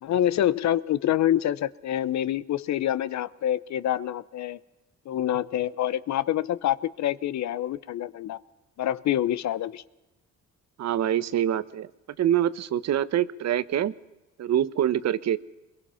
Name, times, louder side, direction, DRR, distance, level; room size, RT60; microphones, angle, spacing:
voice 1, 0.0-4.6 5.0-8.4 8.8-9.8, left 11 dB, 65° left, 17 dB, 0.8 m, -26 dB
voice 2, 10.8-11.9 12.2-13.9 14.4-15.4, right 11 dB, 60° right, 16 dB, 0.9 m, -25 dB
23.0 x 22.0 x 5.7 m, 1.0 s
cardioid pair, 90°, 30 cm